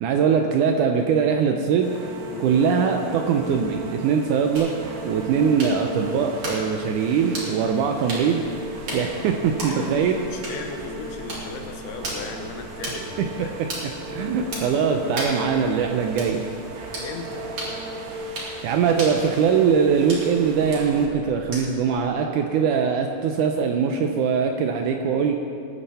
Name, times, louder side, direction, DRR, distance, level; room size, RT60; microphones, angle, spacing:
voice 1, 0.0-1.9 2.4-4.7 5.0-8.4 8.9-10.2 13.4-13.5 14.1-16.4 18.6-25.3, right 6 dB, 85° right, 4 dB, 1.7 m, -22 dB
sound 1, 1.8-21.1, right 1 dB, 60° right, 2.0 m, -37 dB
sound 2, 4.6-21.9, right 1 dB, 45° right, 3.8 m, -37 dB
voice 2, 9.7-13.5 17.0-17.4, left 4 dB, 85° left, 4 dB, 3.1 m, -37 dB
20.5 x 8.9 x 4.3 m, 2.4 s
omnidirectional pair, 4.4 m